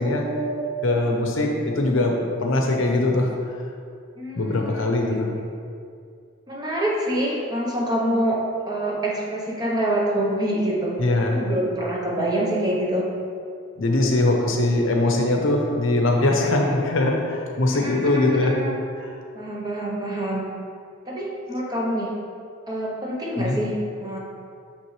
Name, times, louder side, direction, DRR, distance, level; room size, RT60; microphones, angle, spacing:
voice 1, 0.0-1.0 4.2-4.8 6.5-13.1 17.7-18.8 19.3-20.5 21.1-22.1 22.7-24.2, right 1 dB, 20° right, -3 dB, 0.8 m, -26 dB
voice 2, 0.8-3.3 4.3-5.3 11.0-11.4 13.8-18.7 23.4-23.6, left 2 dB, 65° left, 1 dB, 0.8 m, -21 dB
6.0 x 5.9 x 3.1 m, 2.3 s
head